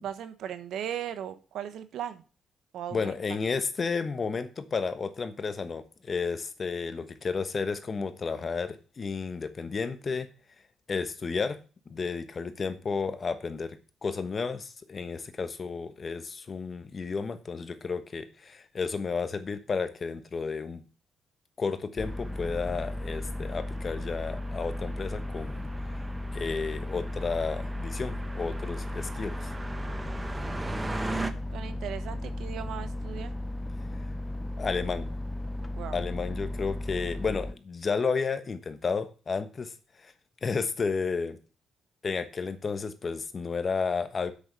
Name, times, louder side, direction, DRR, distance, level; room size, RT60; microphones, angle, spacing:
voice 1, 0.0-2.2 2.7-3.1 31.5-33.3 35.8-36.0, right 10 dB, 75° right, 11 dB, 1.2 m, -37 dB
voice 2, 2.9-10.3 10.9-11.6 11.9-20.8 21.6-25.6 26.3-29.5 34.6-35.1 35.9-39.7 40.0-40.1 40.4-41.4 42.0-44.3, left 5 dB, 40° left, 10 dB, 1.2 m, -32 dB
sound 1, 22.0-37.5, left 1 dB, 15° left, 0.7 m, -35 dB
sound 2, 22.0-31.3, right 2 dB, 20° right, 1.1 m, -40 dB
8.0 x 6.5 x 6.7 m, 0.36 s
cardioid pair, 90°, 0 cm